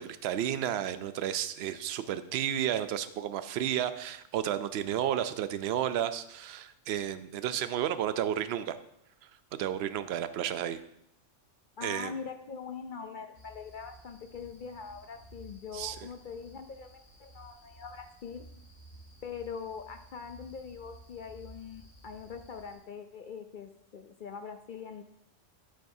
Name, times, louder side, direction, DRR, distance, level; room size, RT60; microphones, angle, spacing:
voice 1, 0.0-8.8 9.6-10.8 11.8-12.1 15.7-16.0, right 10 dB, 65° right, 12 dB, 0.7 m, -32 dB
voice 2, 11.8-18.5 19.2-25.0, left 6 dB, 55° left, 7 dB, 0.5 m, -42 dB
sound 1, 13.3-22.7, right 1 dB, 75° left, 3.8 m, -54 dB
9.3 x 8.9 x 2.7 m, 0.75 s
omnidirectional pair, 1.3 m